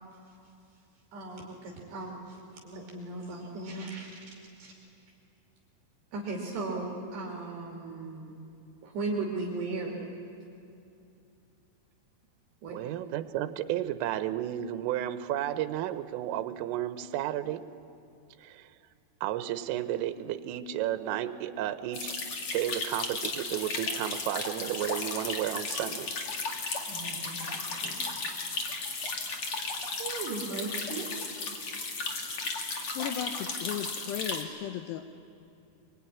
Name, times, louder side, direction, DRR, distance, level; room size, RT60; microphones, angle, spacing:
voice 1, 0.1-0.5 1.1-4.3 4.6-4.7 6.1-8.4 8.8-10.0 12.6-12.8 26.9-28.0 29.6-29.7 30.0-31.1 32.8-32.9, right 3 dB, 60° right, -1 dB, 4.7 m, -37 dB
voice 2, 12.7-17.7 18.4-18.7 19.2-22.2 22.5-26.1, right 12 dB, 90° right, 12 dB, 3.5 m, -32 dB
sound 1, 21.9-34.4, left 3 dB, 50° left, 1.8 m, -35 dB
voice 3, 33.0-35.1, left 10 dB, 80° left, 8 dB, 2.5 m, -36 dB
24.0 x 23.0 x 10.0 m, 2.6 s
omnidirectional pair, 5.8 m